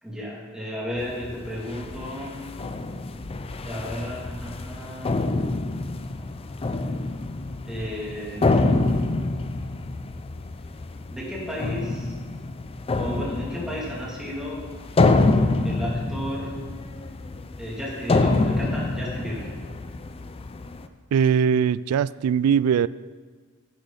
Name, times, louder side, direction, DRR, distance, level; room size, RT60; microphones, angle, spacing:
voice 1, 0.0-2.4 3.6-5.2 7.6-8.8 11.1-12.2 12.9-14.6 15.6-16.5 17.6-19.5, equal, 5° right, -6 dB, 2.6 m, -33 dB
sound 1, 1.0-20.9, left 2 dB, 25° left, 0.4 m, -27 dB
voice 2, 21.1-22.9, right 7 dB, 85° right, 17 dB, 0.3 m, -20 dB
10.5 x 10.0 x 4.0 m, 1.5 s
head